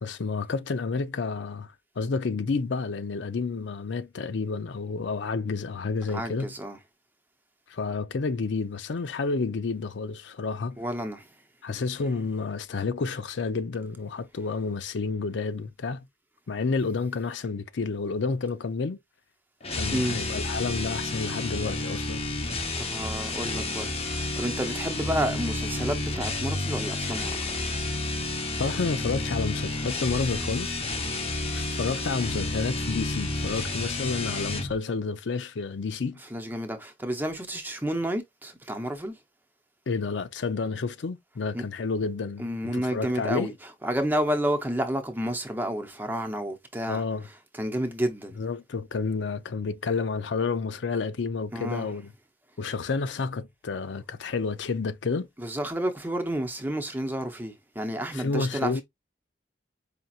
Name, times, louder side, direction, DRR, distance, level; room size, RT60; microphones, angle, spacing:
voice 1, 0.0-6.5 7.7-10.8 11.6-16.1 16.5-19.0 19.7-22.2 28.6-30.8 31.5-36.2 39.9-42.5 42.7-43.5 46.9-47.3 48.4-52.1 52.6-55.3 58.1-58.8, left 4 dB, 90° left, 0.5 m, -30 dB
voice 2, 6.1-6.8 10.8-11.3 11.7-12.1 19.9-20.3 22.8-27.6 36.2-39.2 41.5-41.7 42.4-47.0 47.3-48.4 51.5-52.0 55.4-58.8, right 1 dB, 10° right, 0.7 m, -31 dB
sound 1, 19.6-34.7, left 2 dB, 35° left, 0.9 m, -30 dB
5.0 x 2.8 x 2.4 m
head